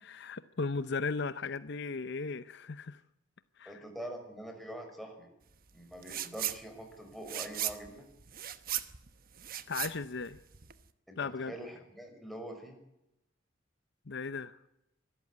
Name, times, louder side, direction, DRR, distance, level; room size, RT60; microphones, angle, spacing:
voice 1, 0.0-3.0 3.6-3.8 9.7-10.4 11.2-11.5 14.1-14.6, left 4 dB, 60° left, 13 dB, 0.8 m, -36 dB
voice 2, 3.7-5.3 5.7-8.1 11.1-12.8, right 1 dB, ahead, 3 dB, 5.3 m, -44 dB
sound 1, 6.0-6.6 6.9-10.9, right 12 dB, 50° right, 1.1 m, -37 dB
24.5 x 14.0 x 9.5 m, 0.86 s
head